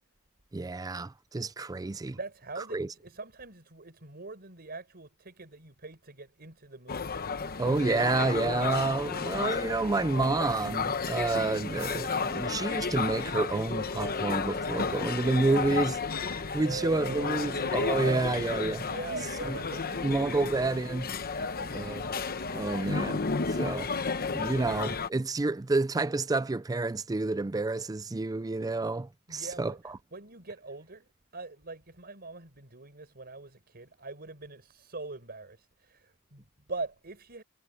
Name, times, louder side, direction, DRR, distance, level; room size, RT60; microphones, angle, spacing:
voice 1, 0.5-2.2 2.7-2.9 7.6-18.9 19.5-19.6 20.0-21.1 21.7-22.1 22.5-23.9 24.3-30.0, right 3 dB, 15° right, 0.4 m, -29 dB
voice 2, 2.1-7.1 16.3-18.2 18.8-20.7 21.3-21.7 29.3-31.1 31.3-37.4, right 3 dB, 45° right, 5.3 m, -42 dB
sound 1, 6.9-25.1, left 4 dB, 45° left, 1.0 m, -33 dB
head